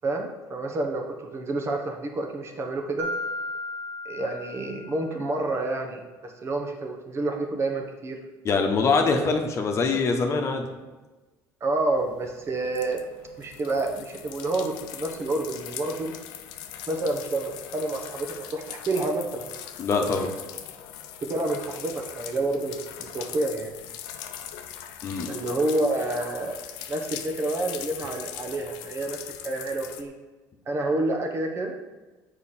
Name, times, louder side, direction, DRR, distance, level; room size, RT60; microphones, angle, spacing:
voice 1, 0.0-3.1 4.0-8.2 11.6-13.0 13.4-16.2 16.9-19.4 21.2-23.8 25.3-26.6 26.9-29.2 29.4-30.1 30.7-31.7, right 2 dB, 40° right, 3 dB, 1.1 m, -29 dB
Mallet percussion, 3.0-5.5, left 1 dB, 85° right, 1.3 m, -35 dB
voice 2, 8.4-10.7 19.8-20.3 25.0-25.3, left 4 dB, 45° left, 4 dB, 1.0 m, -23 dB
sound 1, 12.0-30.0, left 10 dB, 85° left, 0.6 m, -41 dB
7.0 x 5.0 x 4.3 m, 1.2 s
supercardioid pair, 95°, 7 cm